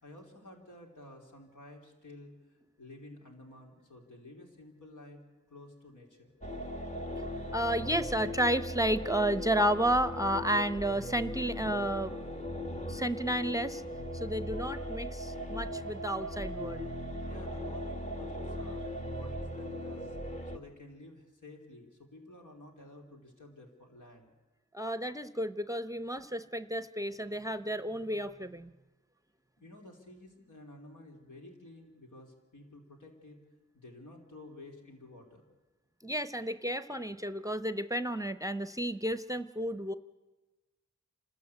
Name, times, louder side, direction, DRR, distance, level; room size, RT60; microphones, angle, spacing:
voice 1, 0.0-5.2 5.5-6.4 17.2-20.2 20.5-24.3 29.6-33.4 33.7-35.4, left 2 dB, 90° left, 1 dB, 3.1 m, -52 dB
sound 1, 6.4-20.6, equal, 25° left, 1.4 m, -38 dB
voice 2, 7.5-12.1 12.9-13.8 14.1-16.9 24.7-28.7 36.0-39.9, right 1 dB, 10° right, 12 dB, 0.7 m, -32 dB
28.0 x 13.5 x 8.2 m, 1.2 s
wide cardioid pair, 50°, 30 cm